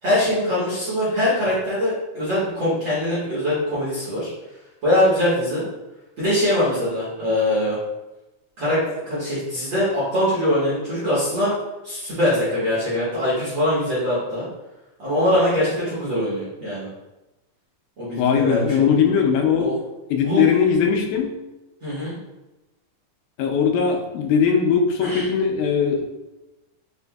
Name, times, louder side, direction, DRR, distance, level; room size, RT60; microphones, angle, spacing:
voice 1, 0.0-4.3 4.8-5.6 6.2-7.8 8.6-11.5 11.8-14.5 15.0-16.9 18.0-18.8 19.6-19.7 20.2-20.4 21.8-22.1 25.0-25.2, left 1 dB, 50° right, -10 dB, 1.5 m, -22 dB
voice 2, 18.2-19.7 20.1-21.3 23.4-26.1, left 6 dB, 90° left, 3 dB, 2.1 m, -19 dB
5.8 x 2.6 x 2.3 m, 1.0 s
omnidirectional pair, 3.6 m